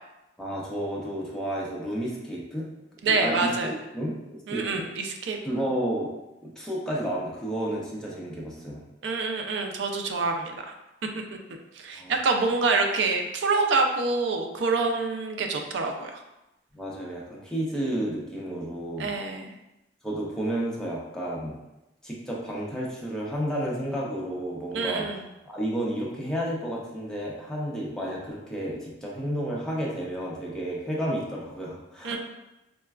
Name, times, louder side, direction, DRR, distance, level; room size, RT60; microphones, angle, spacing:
voice 1, 0.4-2.6 3.1-3.5 3.9-4.9 5.4-6.1 6.4-8.8 12.0-12.1 16.7-19.1 20.0-21.6 22.0-25.1 25.5-32.2, right 1 dB, 5° left, -5 dB, 0.6 m, -31 dB
voice 2, 3.0-3.7 4.5-5.6 9.0-10.6 11.7-16.2 19.0-19.5 24.7-25.2 32.0-32.2, right 3 dB, 80° right, 4 dB, 0.4 m, -26 dB
4.0 x 2.2 x 2.3 m, 0.93 s
head